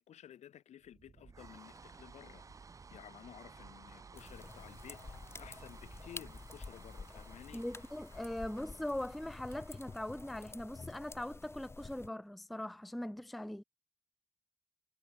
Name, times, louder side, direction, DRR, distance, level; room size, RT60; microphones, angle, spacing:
voice 1, 0.0-2.4 2.9-7.6 8.1-8.3, left 10 dB, 80° left, 0.9 m, -54 dB
sound 1, 0.8-11.3, right 4 dB, 30° right, 0.9 m, -56 dB
sound 2, 4.1-12.1, left 3 dB, 20° left, 1.5 m, -50 dB
sound 3, 4.5-9.6 9.9-10.8, left 8 dB, 65° left, 3.2 m, -70 dB
voice 2, 7.5-13.6, left 1 dB, ahead, 0.3 m, -41 dB
wide cardioid pair, 155°, 12 cm